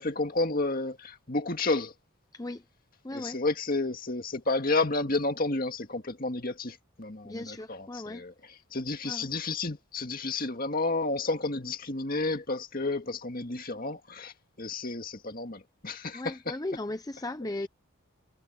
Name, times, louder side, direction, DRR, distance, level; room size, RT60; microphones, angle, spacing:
voice 1, 0.0-1.9 3.1-8.3 8.7-14.3 14.6-16.5, left 3 dB, 40° left, 2.0 m, -31 dB
voice 2, 3.0-3.4 7.2-8.2 9.0-9.3 16.1-17.7, left 2 dB, 15° left, 0.5 m, -37 dB
head